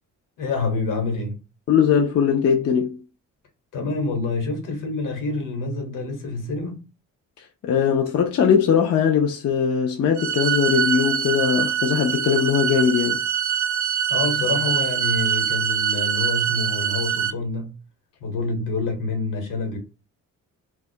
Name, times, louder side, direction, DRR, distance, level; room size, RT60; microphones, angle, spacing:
voice 1, 0.4-1.4 3.7-6.8 13.7-13.8 14.1-17.7 18.2-19.8, left 3 dB, 70° left, 1.1 m, -27 dB
voice 2, 1.7-3.0 7.6-13.2, left 7 dB, 50° left, 0.4 m, -20 dB
sound 1, 10.2-17.3, right 9 dB, 65° right, 0.5 m, -24 dB
2.3 x 2.0 x 2.6 m
cardioid pair, 85°, 32 cm